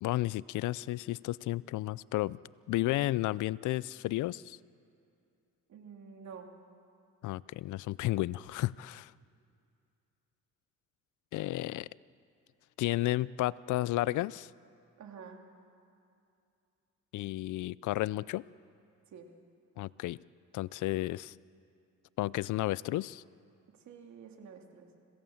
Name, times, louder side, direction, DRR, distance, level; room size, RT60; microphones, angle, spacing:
voice 1, 0.0-2.4 2.7-4.6 7.2-9.1 11.3-11.9 12.8-14.5 17.1-18.4 19.8-20.2 20.5-21.4 22.2-23.2, left 17 dB, 80° left, 21 dB, 0.5 m, -32 dB
voice 2, 5.7-6.5 15.0-15.4 19.1-19.3 23.8-24.9, right 6 dB, 65° right, 3 dB, 2.8 m, -49 dB
26.0 x 17.5 x 7.2 m, 2.6 s
cardioid pair, 90°, 30 cm